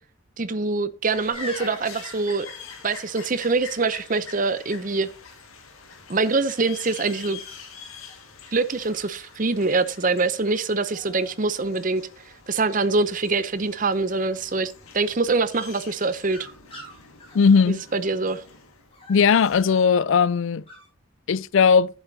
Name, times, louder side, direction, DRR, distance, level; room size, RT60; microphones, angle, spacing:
voice 1, 0.4-2.5 2.8-5.1 6.1-7.4 8.5-12.0 12.5-16.4 17.7-18.4, right 3 dB, 40° right, 0.7 m, -24 dB
sound 1, 1.0-19.9, left 6 dB, 85° left, 1.9 m, -46 dB
sound 2, 1.3-3.1 6.2-6.6 7.4-8.2 8.8-9.7 10.4-10.6 10.8-11.3 11.6-12.2 15.9-18.4 18.9-19.8 20.7-20.9, left 1 dB, 25° left, 4.5 m, -44 dB
voice 2, 17.3-17.8 19.1-20.6 21.3-21.9, left 6 dB, 65° left, 0.4 m, -18 dB
11.5 x 7.3 x 2.8 m
head